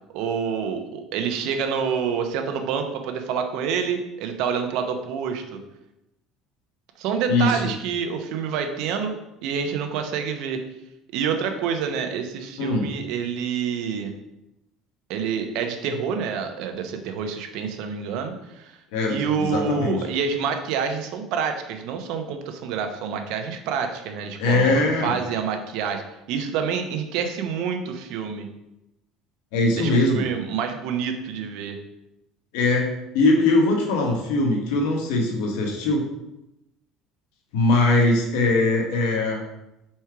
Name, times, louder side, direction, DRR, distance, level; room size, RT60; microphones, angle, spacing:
voice 1, 0.1-5.6 7.0-9.1 9.4-10.6 11.1-14.1 15.1-18.7 19.1-26.0 26.3-28.5 29.8-31.8, right 6 dB, 70° right, 6 dB, 0.8 m, -27 dB
voice 2, 7.3-7.6 12.6-12.9 18.9-20.0 24.4-25.1 29.5-30.2 32.5-32.9 33.1-36.0 37.5-39.4, left 2 dB, 85° left, 1 dB, 1.3 m, -21 dB
4.7 x 4.3 x 4.6 m, 0.90 s
cardioid pair, 135°, 0 cm